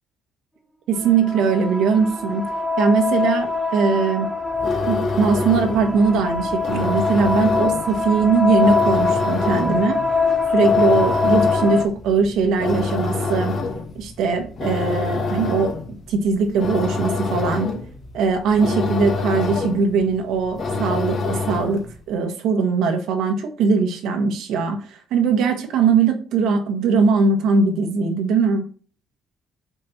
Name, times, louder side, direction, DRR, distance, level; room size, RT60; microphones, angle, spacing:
voice 1, 0.9-2.4 2.8-4.3 4.9-10.0 10.5-13.5 13.9-15.7 16.1-17.7 18.1-28.6, right 5 dB, 70° right, 3 dB, 1.4 m, -20 dB
sound 1, 1.0-11.8, left 4 dB, 5° right, 1.0 m, -23 dB
sound 2, 4.5-21.9, left 3 dB, 40° left, 1.5 m, -27 dB
6.3 x 4.2 x 5.9 m, 0.41 s
cardioid pair, 155°, 0 cm